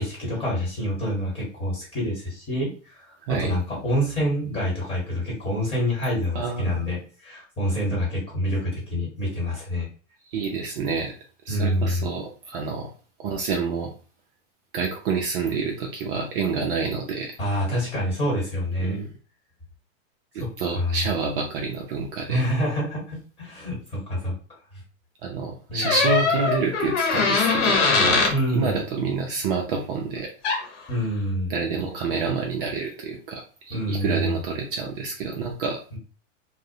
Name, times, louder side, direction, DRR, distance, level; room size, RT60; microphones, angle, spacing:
voice 1, 0.0-9.9 11.5-12.1 17.4-19.0 20.4-20.5 20.7-21.0 22.3-24.3 25.7-26.0 28.3-28.8 30.9-31.5 33.7-34.4 35.9-36.0, equal, 15° left, -4 dB, 1.2 m, -27 dB
voice 2, 6.3-6.8 10.3-11.1 11.5-12.9 13.2-13.9 14.7-17.4 18.8-19.1 20.3-22.4 25.2-30.3 31.5-35.8, right 5 dB, 45° right, 1 dB, 0.4 m, -28 dB
sound 1, 25.8-28.4 30.4-30.7, left 4 dB, 65° left, 0.9 m, -21 dB
2.4 x 2.0 x 2.6 m, 0.38 s
supercardioid pair, 145°, 39 cm